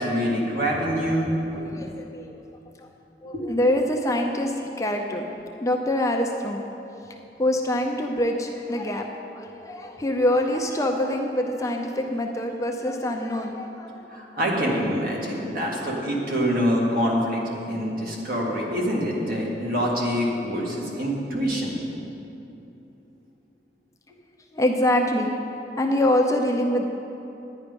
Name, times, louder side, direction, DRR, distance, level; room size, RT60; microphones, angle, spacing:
voice 1, 0.0-1.3 3.3-3.4 14.1-17.4 17.7-21.8, equal, 55° right, -3 dB, 2.1 m, -25 dB
voice 2, 1.5-2.4 2.8-2.9 3.2-5.3 5.6-6.6 7.4-9.1 9.3-13.9 24.5-25.3 25.8-26.8, left 1 dB, 20° left, 2 dB, 0.6 m, -25 dB
10.5 x 9.8 x 5.3 m, 2.9 s
head